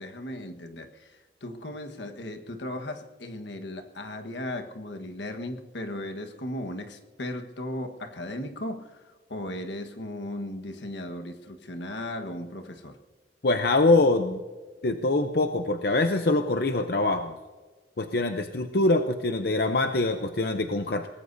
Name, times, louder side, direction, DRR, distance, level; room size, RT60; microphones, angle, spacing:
voice 1, 0.0-13.0, left 1 dB, 80° left, 6 dB, 1.4 m, -36 dB
voice 2, 13.4-14.4 14.8-17.3 18.0-21.1, left 2 dB, 55° left, 6 dB, 0.7 m, -24 dB
23.0 x 19.0 x 2.7 m, 1.4 s
head